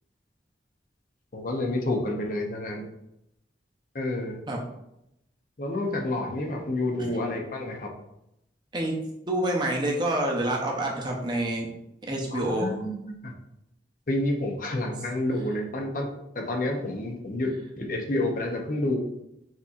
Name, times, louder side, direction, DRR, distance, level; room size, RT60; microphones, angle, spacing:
voice 1, 1.3-2.8 3.9-4.4 5.6-7.9 12.3-13.3 14.1-16.1 16.3-19.0, left 1 dB, 50° left, 1 dB, 0.7 m, -29 dB
voice 2, 9.3-11.7 12.0-12.7, right 1 dB, 25° right, -1 dB, 0.7 m, -27 dB
6.1 x 2.8 x 2.4 m, 0.83 s
head